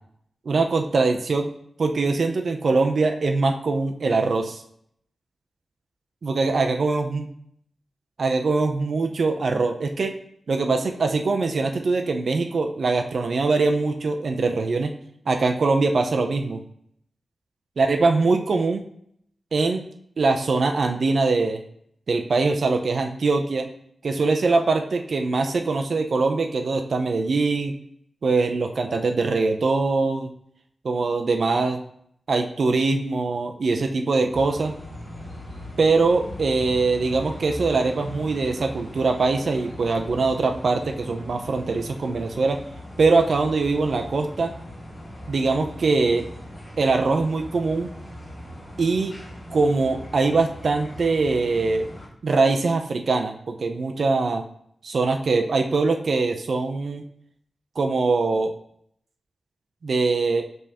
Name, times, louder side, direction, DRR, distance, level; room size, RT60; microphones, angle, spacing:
voice 1, 0.5-1.5 1.8-4.6 6.2-7.3 8.2-10.2 10.5-14.9 15.3-16.6 17.8-18.9 19.5-19.8 20.2-21.6 22.1-23.7 24.0-27.8 28.2-30.3 30.8-31.8 32.3-34.7 35.8-42.6 43.0-44.5 45.3-46.3 46.8-47.9 48.8-49.2 49.5-51.9 52.2-54.4 54.8-57.0 57.8-58.5 59.8-60.5, right 3 dB, 60° right, 5 dB, 0.4 m, -22 dB
sound 1, 34.3-52.1, left 1 dB, 35° left, 1.6 m, -39 dB
5.3 x 3.4 x 2.8 m, 0.67 s
wide cardioid pair, 140°, 0 cm